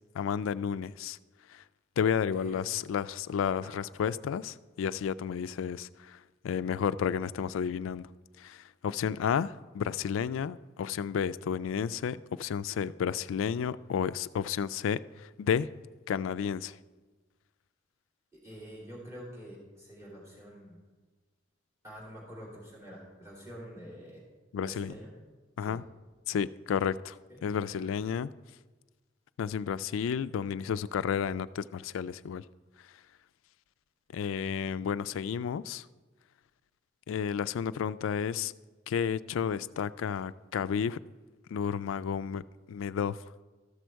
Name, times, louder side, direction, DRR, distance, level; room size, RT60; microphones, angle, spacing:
voice 1, 0.1-1.2 1.5-1.6 2.0-8.1 8.4-15.7 16.1-16.8 24.5-24.9 25.6-25.8 26.3-27.2 27.4-28.3 29.4-32.4 34.1-35.9 37.1-38.5 38.9-41.0 41.5-42.4 42.7-43.2, left 7 dB, 80° left, 16 dB, 0.3 m, -32 dB
voice 2, 18.4-20.8 21.8-24.2 24.6-25.1 25.6-25.8 27.3-27.9, equal, 15° right, -6 dB, 3.1 m, -47 dB
13.5 x 6.3 x 4.5 m, 1.3 s
head